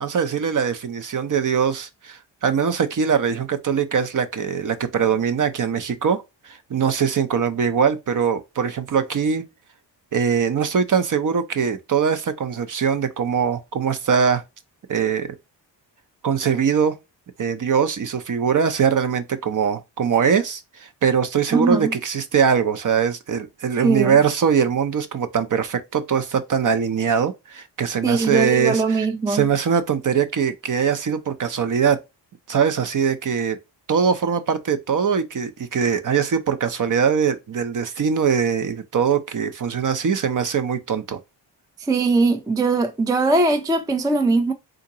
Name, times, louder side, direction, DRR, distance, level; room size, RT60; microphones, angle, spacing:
voice 1, 0.0-9.4 10.1-14.4 14.9-15.3 16.2-16.9 17.4-32.0 32.5-33.6 33.9-41.2, right 7 dB, 45° right, 0.7 m, -22 dB
voice 2, 21.5-21.9 23.8-24.1 28.0-29.5 41.9-44.5, right 3 dB, 10° right, 0.4 m, -20 dB
3.8 x 2.8 x 2.7 m
cardioid pair, 115°, 44 cm